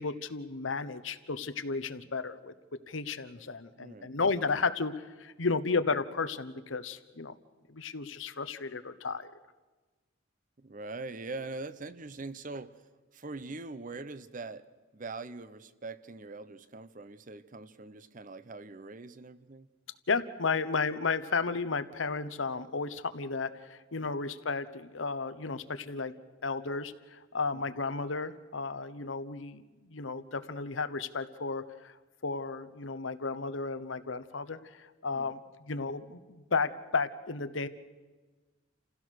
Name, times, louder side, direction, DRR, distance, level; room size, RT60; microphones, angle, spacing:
voice 1, 0.0-2.5 2.9-7.3 7.7-9.3 20.1-26.1 26.4-31.9 32.2-35.4 35.7-37.7, left 4 dB, 80° left, 12 dB, 1.0 m, -33 dB
voice 2, 3.8-4.2 10.6-12.8 13.1-14.6 14.9-19.7 27.5-27.7 35.1-35.4, right 3 dB, 40° right, 14 dB, 0.8 m, -43 dB
29.0 x 16.0 x 6.5 m, 1.3 s
head